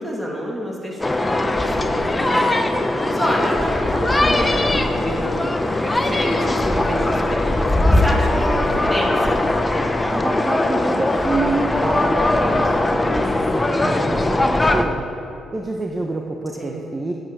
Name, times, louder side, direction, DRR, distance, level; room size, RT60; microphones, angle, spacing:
voice 1, 0.0-9.5 16.5-16.9, equal, 10° right, -2 dB, 2.5 m, -28 dB
sound 1, 1.0-14.8, left 2 dB, 15° left, 0.7 m, -20 dB
voice 2, 10.1-15.0 15.5-17.1, right 2 dB, 25° right, 1 dB, 0.9 m, -27 dB
8.6 x 7.8 x 8.6 m, 2.6 s
cardioid pair, 90°, 0 cm